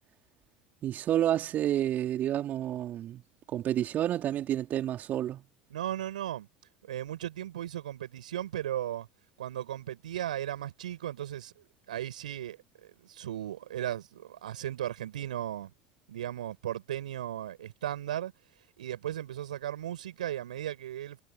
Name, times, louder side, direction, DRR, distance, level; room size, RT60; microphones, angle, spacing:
voice 1, 0.8-3.2 3.5-5.4, right 11 dB, 45° right, 3.6 m, -29 dB
voice 2, 5.7-6.5 6.9-9.1 9.4-15.7 16.1-18.3 18.8-21.2, right 12 dB, 75° right, 6.6 m, -36 dB
figure-of-eight pair, 70°, 4 cm